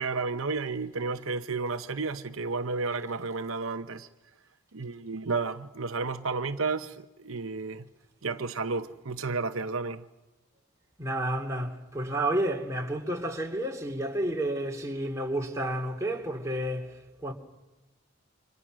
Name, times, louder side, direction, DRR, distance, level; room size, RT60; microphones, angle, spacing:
voice 1, 0.0-4.1 4.7-7.9 8.2-10.1, right 4 dB, 75° right, 0.9 m, -32 dB
voice 2, 11.0-17.3, right 1 dB, 15° right, 2.5 m, -31 dB
30.0 x 26.0 x 6.3 m
head